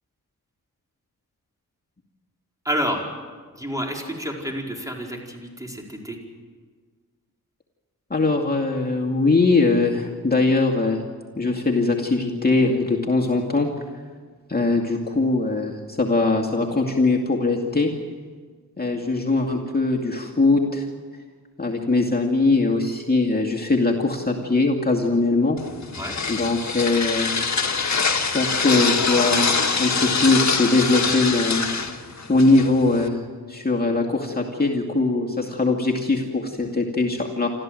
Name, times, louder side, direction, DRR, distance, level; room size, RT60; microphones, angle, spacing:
voice 1, 2.6-3.0 3.5-6.2 25.9-26.2, equal, 10° right, 0 dB, 4.8 m, -29 dB
voice 2, 8.1-11.0 11.4-13.7 14.5-17.9 18.8-20.9 21.6-25.6 26.3-27.3 28.3-31.7 32.3-33.2 33.5-37.5, left 3 dB, 25° left, -1 dB, 2.3 m, -21 dB
sound 1, 25.6-33.1, left 5 dB, 50° left, 1.7 m, -24 dB
28.0 x 14.0 x 7.8 m, 1.5 s
cardioid pair, 55°, 37 cm